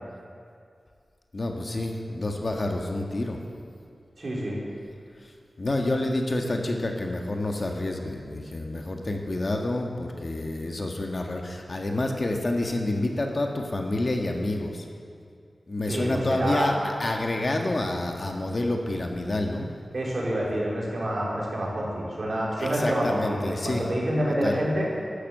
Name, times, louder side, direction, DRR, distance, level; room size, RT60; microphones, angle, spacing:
voice 1, 1.3-3.4 5.2-5.3 5.6-14.8 15.7-19.7 22.6-23.8 24.4-24.6, left 2 dB, 45° left, 2 dB, 1.7 m, -28 dB
voice 2, 4.2-4.6 15.9-16.7 19.9-24.9, right 1 dB, 55° right, -4 dB, 4.6 m, -27 dB
12.5 x 12.0 x 8.0 m, 2.4 s
wide cardioid pair, 85°, 0 cm